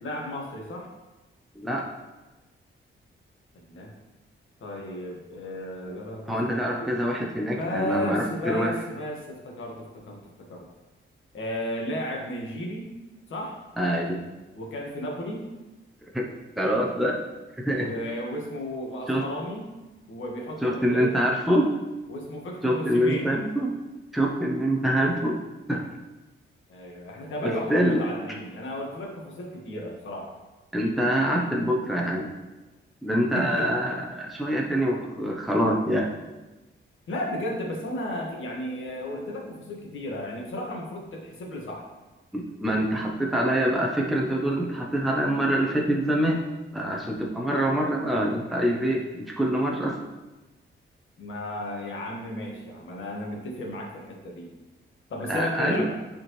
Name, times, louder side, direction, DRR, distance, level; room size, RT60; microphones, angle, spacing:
voice 1, 0.0-0.9 3.5-3.9 4.6-6.9 7.5-10.2 10.5-10.7 11.3-12.9 13.3-13.5 14.5-15.5 17.8-19.7 20.1-21.2 22.1-23.3 26.7-30.3 33.2-33.7 37.1-41.9 46.9-47.0 51.2-54.5 55.1-55.9, left 1 dB, 70° left, 0 dB, 1.6 m, -34 dB
voice 2, 1.6-1.9 6.3-8.7 13.8-14.2 16.1-16.3 16.6-17.2 17.7-17.9 19.1-19.2 20.6-21.7 22.6-23.8 24.1-25.4 25.7-25.9 27.4-28.0 30.7-32.3 33.0-36.1 42.3-46.4 46.7-50.0 55.3-55.9, equal, ahead, -2 dB, 0.7 m, -25 dB
10.5 x 4.4 x 3.1 m, 1.1 s
wide cardioid pair, 165°, 21 cm